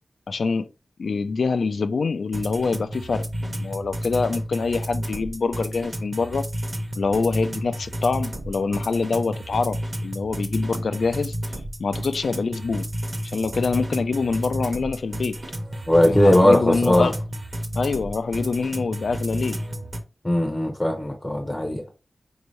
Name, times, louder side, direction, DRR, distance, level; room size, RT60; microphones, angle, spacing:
voice 1, 0.3-0.7 1.0-6.5 7.0-11.4 11.8-12.9 13.2-15.4 16.1-17.2 17.8-19.6, left 4 dB, 80° left, 0.3 m, -25 dB
sound 1, 2.3-20.0, equal, 30° right, 0.9 m, -31 dB
voice 2, 15.9-17.1 20.2-21.8, left 1 dB, 15° left, 0.6 m, -18 dB
4.4 x 2.7 x 3.1 m
wide cardioid pair, 110°, 0 cm